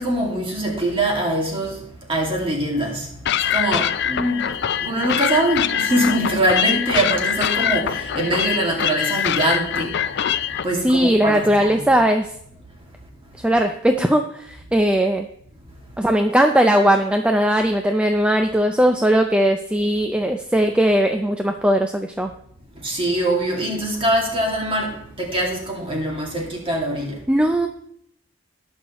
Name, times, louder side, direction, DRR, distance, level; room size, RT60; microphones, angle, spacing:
voice 1, 0.0-1.8 2.1-3.1 3.5-4.5 4.8-9.9 10.6-11.9 22.8-24.9 25.2-27.2, right 1 dB, 25° right, 0 dB, 2.1 m, -23 dB
sound 1, 3.3-10.7, left 9 dB, 55° left, 0.4 m, -23 dB
voice 2, 10.8-12.3 13.4-15.3 16.0-22.3 27.3-27.7, equal, 5° right, 5 dB, 0.4 m, -18 dB
19.0 x 6.3 x 3.0 m, 0.69 s
head